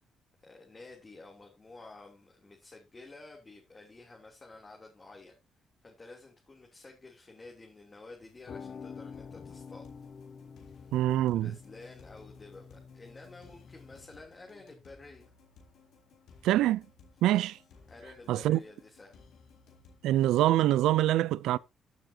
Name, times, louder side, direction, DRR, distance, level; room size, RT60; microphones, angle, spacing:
voice 1, 0.4-5.3 5.8-9.9 10.8-10.9 11.4-15.3 17.9-19.2, left 3 dB, 25° left, 3.0 m, -51 dB
sound 1, 8.2-14.2, left 6 dB, 50° left, 0.8 m, -48 dB
sound 2, 9.1-20.6, left 4 dB, 75° left, 3.5 m, -59 dB
voice 2, 10.9-11.5 16.4-16.9 17.2-17.6 18.3-18.6 20.0-21.6, right 14 dB, 90° right, 0.4 m, -25 dB
15.0 x 7.1 x 2.8 m
cardioid pair, 90°, 0 cm